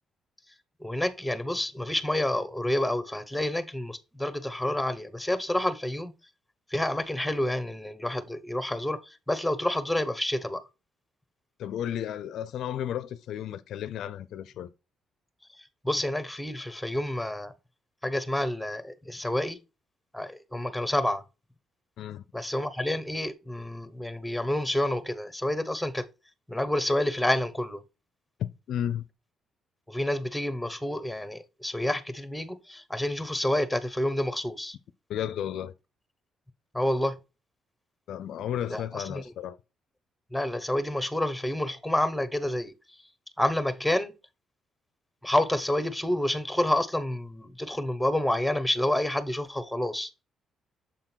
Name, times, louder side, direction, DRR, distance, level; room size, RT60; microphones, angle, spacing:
voice 1, 0.8-6.1 6.7-10.6 15.6-17.5 18.0-19.6 20.1-21.2 22.3-26.1 26.5-27.8 29.9-34.8 36.7-37.2 38.7-39.2 40.3-42.7 43.4-44.1 45.2-50.1, left 1 dB, 5° left, 1.0 m, -29 dB
voice 2, 11.6-14.7 22.0-22.2 28.4-29.0 35.1-35.7 38.1-39.6, left 10 dB, 75° left, 0.5 m, -33 dB
7.2 x 3.8 x 4.4 m
cardioid pair, 90°, 0 cm